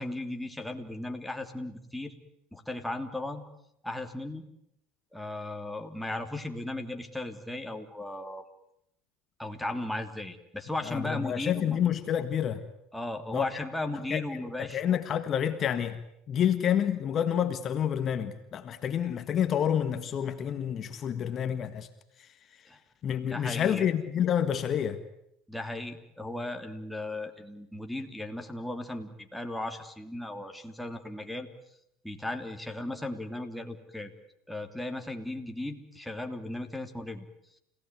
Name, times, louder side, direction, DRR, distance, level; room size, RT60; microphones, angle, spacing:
voice 1, 0.0-2.2 2.5-3.4 3.8-4.5 5.1-8.4 9.4-11.8 12.9-14.8 22.7-22.8 23.2-23.9 25.5-31.5 32.0-34.1 34.5-37.2, left 1 dB, 5° left, 4 dB, 3.0 m, -36 dB
voice 2, 10.9-12.6 13.3-13.6 14.1-14.2 14.6-16.0 16.3-21.9 22.2-22.3 23.0-25.0, left 9 dB, 40° left, 10 dB, 1.6 m, -28 dB
29.5 x 17.5 x 9.5 m, 0.79 s
supercardioid pair, 100°, 0 cm